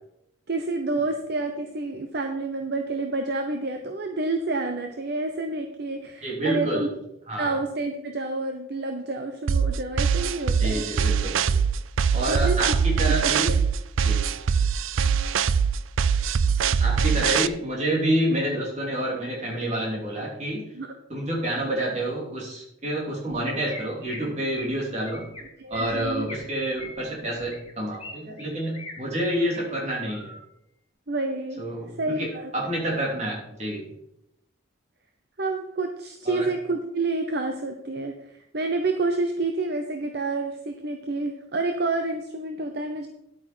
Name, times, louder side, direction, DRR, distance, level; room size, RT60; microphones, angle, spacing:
voice 1, 0.5-6.9 7.4-10.9 12.3-12.7 13.1-13.5 20.7-20.9 25.6-26.3 31.1-31.6 31.9-32.5 35.4-43.1, right 2 dB, 55° right, 5 dB, 0.8 m, -29 dB
voice 2, 6.2-6.9 7.3-7.6 10.6-11.5 12.1-13.5 14.0-14.2 16.8-20.6 21.1-25.3 25.7-30.3 31.6-31.9 32.2-33.9 36.2-36.5, right 1 dB, 35° right, -3 dB, 3.1 m, -28 dB
sound 1, 9.5-17.5, right 6 dB, 80° right, 0.4 m, -22 dB
Chirp tweet, 23.7-24.2 24.5-24.7 25.1-25.4 25.7-26.4 26.8-28.1 28.4-28.9 29.4-29.6 30.1-30.4, left 1 dB, 30° left, 3.3 m, -41 dB
11.0 x 8.5 x 4.5 m, 0.82 s
head